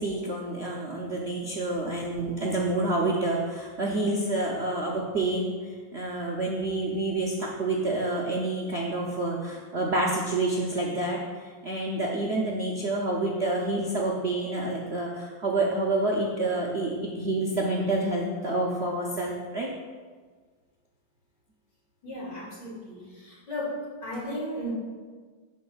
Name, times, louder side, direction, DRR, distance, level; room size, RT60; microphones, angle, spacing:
voice 1, 0.0-5.5 5.9-11.2 11.6-16.9 17.2-19.7, right 2 dB, 65° right, -3 dB, 0.6 m, -28 dB
voice 2, 22.0-23.7 24.0-24.7, left 1 dB, 60° left, -7 dB, 3.1 m, -35 dB
13.0 x 5.2 x 2.4 m, 1.5 s
omnidirectional pair, 2.2 m